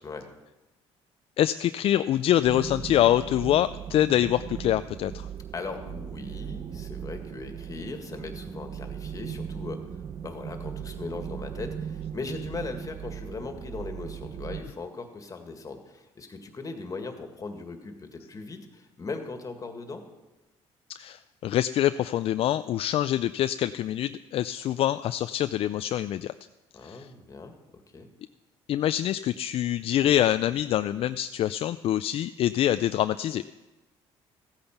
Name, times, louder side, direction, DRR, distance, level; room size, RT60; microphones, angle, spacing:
voice 1, 1.4-5.3 21.0-26.3 26.8-27.1 28.7-33.4, left 12 dB, 60° left, 12 dB, 0.4 m, -25 dB
sound 1, 2.4-14.6, right 8 dB, 40° right, 0.8 m, -38 dB
voice 2, 5.5-20.0 26.7-28.1, left 3 dB, 30° left, 6 dB, 1.9 m, -39 dB
14.5 x 8.7 x 5.9 m, 1.1 s
cardioid pair, 90°, 11 cm